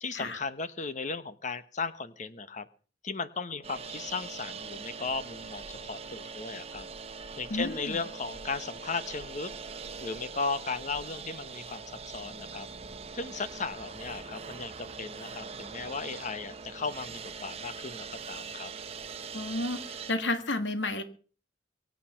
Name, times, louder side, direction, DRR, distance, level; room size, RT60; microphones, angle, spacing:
voice 1, 0.0-2.7 3.0-6.9 7.4-9.5 10.0-12.7 13.1-18.7, left 4 dB, 45° left, 13 dB, 1.1 m, -36 dB
sound 1, 3.6-20.1, right 5 dB, 35° right, 1.1 m, -42 dB
voice 2, 7.5-8.0 19.3-21.0, left 2 dB, 85° left, 9 dB, 1.8 m, -31 dB
23.5 x 8.5 x 5.7 m, 0.41 s
head